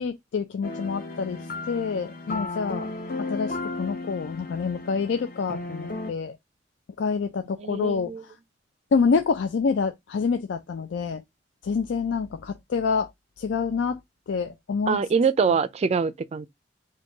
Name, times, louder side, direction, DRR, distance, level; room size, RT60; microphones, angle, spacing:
voice 1, 0.0-2.9 3.2-6.4 7.0-8.3 8.9-11.2 11.6-13.1 13.4-14.0 14.3-15.0 15.4-15.5, left 5 dB, 90° left, 0.4 m, -27 dB
sound 1, 0.6-6.1, left 2 dB, 50° left, 0.8 m, -34 dB
voice 2, 7.6-8.2 14.9-16.5, right 5 dB, 35° right, 0.3 m, -24 dB
3.7 x 2.6 x 3.7 m
head